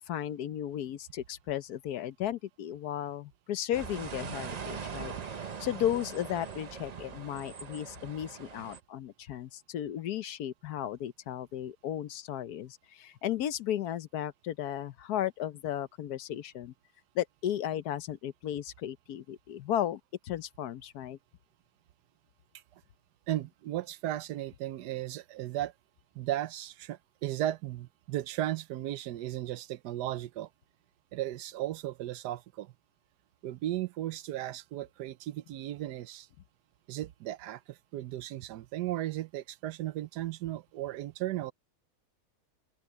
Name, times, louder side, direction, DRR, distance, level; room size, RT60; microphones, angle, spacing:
voice 1, 0.1-16.7 17.1-21.2, left 11 dB, 70° left, 1.2 m, -35 dB
sound 1, 3.7-8.8, right 6 dB, 55° right, 0.4 m, -41 dB
voice 2, 23.3-25.7 26.1-30.5 31.1-32.7 33.4-36.3 36.9-41.5, right 14 dB, 80° right, 1.2 m, -35 dB
open air
omnidirectional pair, 1.8 m